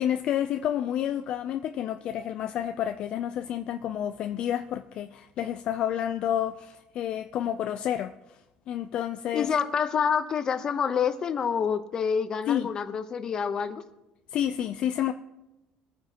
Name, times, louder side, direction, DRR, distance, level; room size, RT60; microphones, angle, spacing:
voice 1, 0.0-8.1 8.7-9.5 12.5-12.7 14.3-15.1, left 10 dB, 50° left, 8 dB, 0.4 m, -29 dB
voice 2, 9.3-13.8, left 7 dB, 30° left, 9 dB, 0.9 m, -27 dB
23.0 x 9.0 x 2.9 m, 0.98 s
cardioid pair, 140°, 2 cm